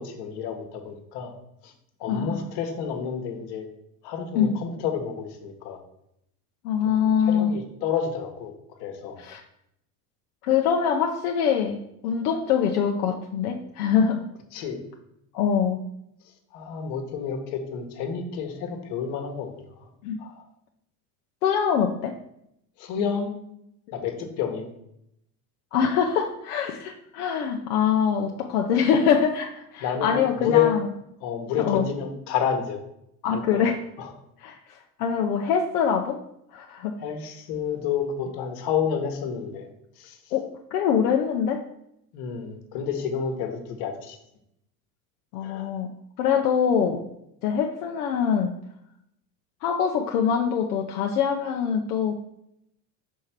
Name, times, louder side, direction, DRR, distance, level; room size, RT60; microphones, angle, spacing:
voice 1, 0.0-1.3 1.6-1.7 2.0-3.7 4.0-5.8 7.0-8.5 8.8-9.2 14.5-14.8 16.5-19.9 20.2-20.4 22.8-23.3 23.9-24.7 29.8-30.8 31.2-32.8 33.3-33.7 34.0-34.1 37.0-39.7 40.0-40.2 42.1-44.2 45.4-45.7, left 7 dB, 60° left, 5 dB, 1.3 m, -29 dB
voice 2, 2.1-2.5 4.3-4.6 6.6-7.5 9.2-9.4 10.4-14.2 15.3-15.8 20.0-20.2 21.4-22.1 25.7-30.8 31.6-31.9 33.2-33.8 34.4-34.6 35.0-36.2 36.5-36.9 40.3-40.5 40.7-41.6 45.3-47.0 47.4-48.5 49.6-52.2, left 7 dB, 85° left, 1 dB, 0.7 m, -24 dB
5.4 x 3.3 x 5.7 m, 0.78 s
supercardioid pair, 95°, 45 cm